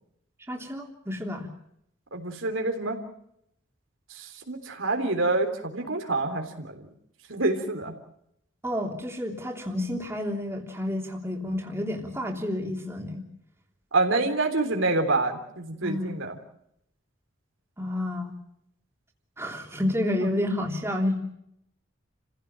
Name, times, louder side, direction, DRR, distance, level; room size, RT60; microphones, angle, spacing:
voice 1, 0.5-1.5 8.6-13.2 15.8-16.1 17.8-18.3 19.4-21.2, left 1 dB, 15° right, 0 dB, 3.2 m, -30 dB
voice 2, 2.1-3.0 4.1-6.7 7.3-7.9 13.9-16.4, right 2 dB, 80° right, 3 dB, 3.6 m, -27 dB
29.5 x 16.0 x 7.5 m, 0.76 s
head